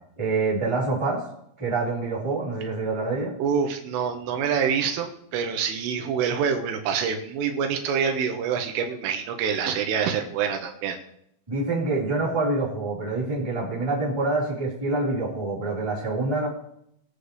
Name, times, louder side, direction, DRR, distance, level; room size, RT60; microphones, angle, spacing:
voice 1, 0.2-1.2 1.6-3.3 11.5-16.5, right 3 dB, 5° right, -7 dB, 3.7 m, -26 dB
voice 2, 3.4-11.0, right 7 dB, 85° right, 4 dB, 3.8 m, -26 dB
22.5 x 8.2 x 3.3 m, 0.73 s
omnidirectional pair, 5.6 m